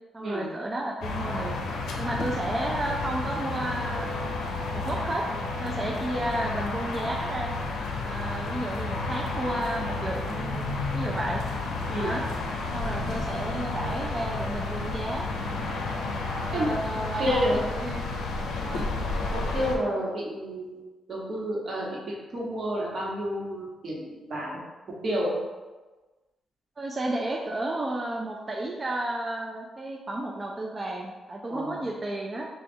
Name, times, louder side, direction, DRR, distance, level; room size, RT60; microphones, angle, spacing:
voice 1, 0.1-1.6 2.0-4.4 4.7-5.2 5.6-7.5 8.1-11.4 12.0-12.3 12.7-15.3 16.5-18.0 18.6-18.9 26.8-32.5, right 1 dB, 25° right, 0 dB, 0.3 m, -32 dB
sound 1, 1.0-19.8, left 3 dB, 90° left, 0.5 m, -31 dB
voice 2, 16.5-17.6 19.3-20.8 21.1-24.6 25.0-25.4 31.5-31.8, equal, 50° right, -4 dB, 1.0 m, -30 dB
3.2 x 2.3 x 4.3 m, 1.2 s
cardioid pair, 115°, 0 cm